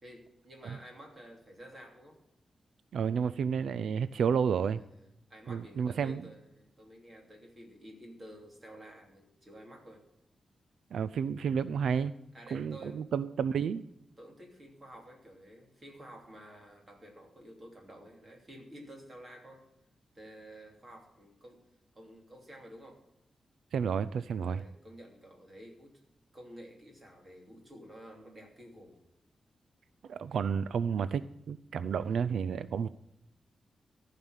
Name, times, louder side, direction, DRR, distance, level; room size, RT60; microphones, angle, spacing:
voice 1, 0.0-2.2 4.2-4.4 4.9-10.0 12.3-13.0 14.2-19.6 20.1-21.6 21.9-23.0 24.4-26.0 26.3-29.0 32.0-32.1, equal, 25° right, 1 dB, 3.0 m, -51 dB
voice 2, 2.9-4.8 5.5-6.2 10.9-12.1 12.5-13.8 23.7-24.6 30.1-32.9, right 7 dB, 85° right, 15 dB, 0.4 m, -31 dB
14.5 x 5.8 x 9.0 m, 0.83 s
wide cardioid pair, 175°, 0 cm